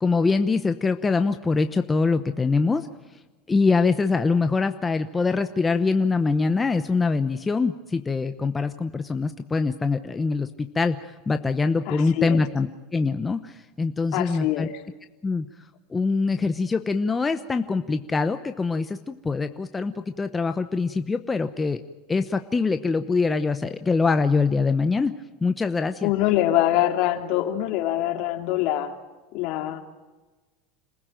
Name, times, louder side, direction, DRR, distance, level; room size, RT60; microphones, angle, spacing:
voice 1, 0.0-2.9 3.5-14.7 15.2-15.5 15.9-21.8 22.1-25.1 25.4-26.1, left 4 dB, 15° left, 8 dB, 0.9 m, -24 dB
voice 2, 11.9-12.4 14.1-14.7 26.0-28.9 29.3-29.8, left 13 dB, 60° left, 5 dB, 2.7 m, -24 dB
27.0 x 15.5 x 9.1 m, 1.2 s
supercardioid pair, 115°, 0 cm